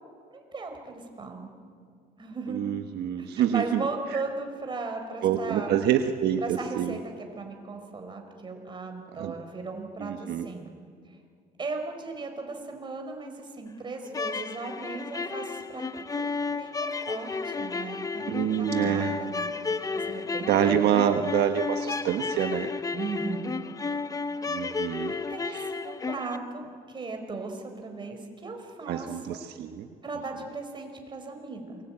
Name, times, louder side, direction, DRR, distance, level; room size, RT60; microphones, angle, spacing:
voice 1, 0.3-1.5 2.2-2.6 3.2-5.7 6.4-10.7 11.6-15.8 16.1-20.5 22.9-23.5 25.3-29.4 30.0-31.8, right 3 dB, 30° right, 4 dB, 4.7 m, -37 dB
voice 2, 2.5-3.8 4.1-4.2 5.2-7.0 9.2-9.3 10.0-10.5 18.3-19.2 20.5-22.7 24.5-25.1 25.5-25.7 28.9-29.9, right 9 dB, 75° right, 6 dB, 1.3 m, -26 dB
sound 1, 14.1-26.4, left 4 dB, 20° left, 0.9 m, -32 dB
28.0 x 22.5 x 8.8 m, 2.2 s
cardioid pair, 110°, 17 cm